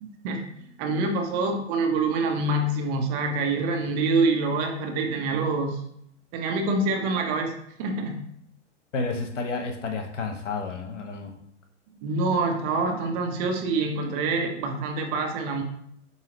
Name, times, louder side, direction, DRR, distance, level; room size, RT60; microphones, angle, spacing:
voice 1, 0.0-5.8 6.3-8.2 12.0-15.6, right 3 dB, 35° right, 3 dB, 0.7 m, -26 dB
voice 2, 8.9-11.4, left 3 dB, 80° left, 4 dB, 0.9 m, -31 dB
4.8 x 2.7 x 2.9 m, 0.71 s
hypercardioid pair, 125°, 36 cm